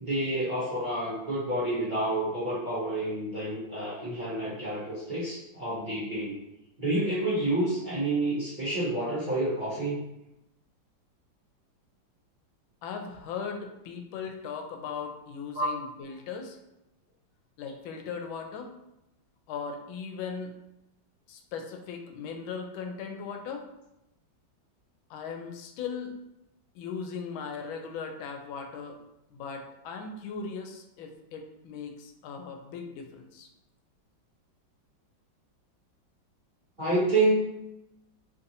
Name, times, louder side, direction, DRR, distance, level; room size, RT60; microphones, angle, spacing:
voice 1, 0.0-6.4 6.8-10.0 15.5-15.7 36.8-37.5, right 1 dB, 45° right, -10 dB, 0.6 m, -29 dB
voice 2, 12.8-16.6 17.6-18.7 19.5-20.5 21.3-23.7 25.1-26.1 26.7-29.0 29.3-33.5, left 5 dB, 90° left, 4 dB, 1.4 m, -38 dB
3.5 x 2.6 x 2.7 m, 0.88 s
omnidirectional pair, 2.1 m